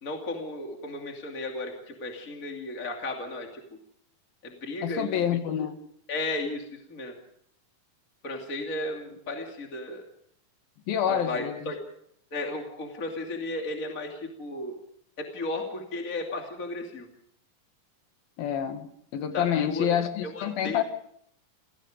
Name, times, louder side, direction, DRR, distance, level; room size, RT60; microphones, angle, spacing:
voice 1, 0.0-3.8 4.4-5.2 6.1-7.1 8.2-10.0 11.1-11.8 12.3-14.8 15.2-17.1 19.3-19.9 20.2-20.8, left 2 dB, 25° left, 2 dB, 2.7 m, -34 dB
voice 2, 4.8-5.7 10.9-11.7 18.4-20.8, left 9 dB, 90° left, 7 dB, 3.6 m, -28 dB
28.5 x 18.0 x 5.0 m, 0.69 s
omnidirectional pair, 4.0 m